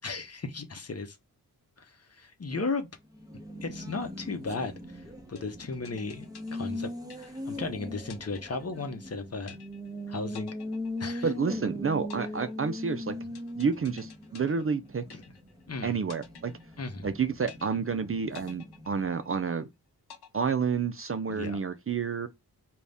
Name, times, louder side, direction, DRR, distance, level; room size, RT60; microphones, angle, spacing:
voice 1, 0.0-1.2 1.8-2.9 3.6-6.3 6.5-6.9 7.2-9.6 10.1-10.5 11.0-11.3 13.2-13.3 15.1-15.2 15.7-16.0 16.8-17.1 21.3-21.6, left 3 dB, 40° left, 0.9 m, -35 dB
Race car auto racing, 3.0-19.3, left 1 dB, 10° right, 1.0 m, -40 dB
sound 1, 5.4-7.7 8.1-9.1 9.5-10.0 10.3-11.6 12.1-15.7 16.1-17.1 17.5-18.0 18.3-19.6 20.1-21.1, left 8 dB, 80° left, 0.7 m, -51 dB
voice 2, 11.2-13.2 13.6-15.2 15.8-16.5 17.0-19.7 20.3-22.3, right 5 dB, 35° right, 0.5 m, -29 dB
4.0 x 2.3 x 3.4 m
cardioid pair, 60°, 38 cm